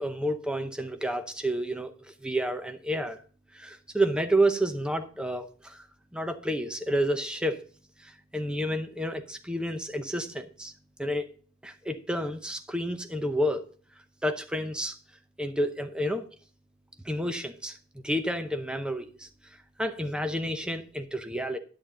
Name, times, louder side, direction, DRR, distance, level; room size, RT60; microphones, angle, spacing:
voice 1, 0.0-3.2 3.5-5.9 6.1-7.6 8.0-10.7 11.0-11.3 11.6-13.6 14.2-15.0 15.4-16.2 17.0-17.8 18.0-19.3 19.8-21.6, right 1 dB, 5° right, 0.7 m, -30 dB
10.5 x 8.7 x 3.8 m
head